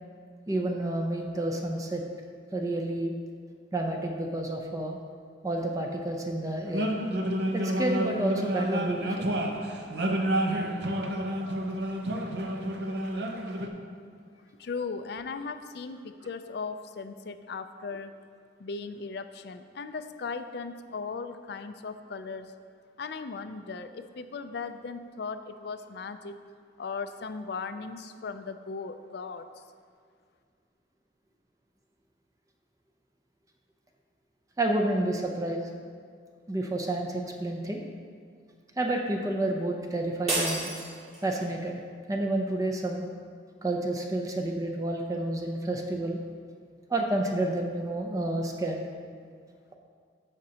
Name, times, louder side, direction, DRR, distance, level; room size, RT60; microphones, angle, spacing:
voice 1, 0.5-2.0 2.5-3.1 3.7-5.0 5.4-6.9 7.5-9.3 34.6-35.7 36.5-37.8 38.8-40.7 41.2-41.8 42.1-43.0 43.6-46.2 46.9-48.8, right 1 dB, 20° right, 2 dB, 0.5 m, -30 dB
sound 1, 6.7-13.7, right 1 dB, 60° right, 0.7 m, -29 dB
voice 2, 14.6-18.1 18.6-22.5 23.0-26.3 26.8-29.6, left 4 dB, 60° left, 9 dB, 0.4 m, -37 dB
sound 2, 40.3-41.5, right 1 dB, 40° right, 2.2 m, -31 dB
15.0 x 5.2 x 2.9 m, 2.2 s
head